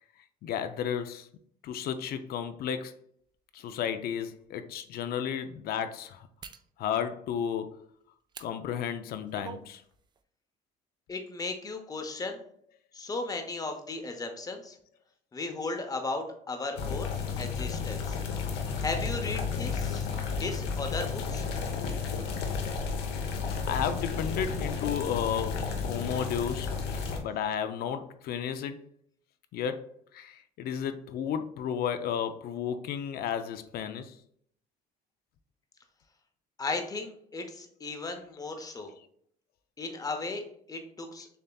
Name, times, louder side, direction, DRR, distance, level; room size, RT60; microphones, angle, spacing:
voice 1, 0.4-1.3 1.6-3.0 3.5-6.3 6.8-7.8 8.4-9.8 23.6-26.7 27.2-28.8 29.5-34.2, left 8 dB, 65° left, 9 dB, 0.4 m, -33 dB
sound 1, 3.6-3.7 4.3-4.5 6.4-6.7 8.3-8.5 9.0-9.7 10.0-10.2, right 6 dB, 25° right, 0.3 m, -45 dB
voice 2, 11.1-12.4 12.9-14.8 15.3-18.2 18.8-20.1 20.4-21.4 36.6-38.9 39.8-41.3, left 3 dB, 20° left, 5 dB, 0.7 m, -36 dB
sound 2, 16.8-27.2, left 5 dB, 85° left, 0.8 m, -32 dB
6.7 x 2.7 x 2.3 m, 0.66 s
cardioid pair, 110°, 17 cm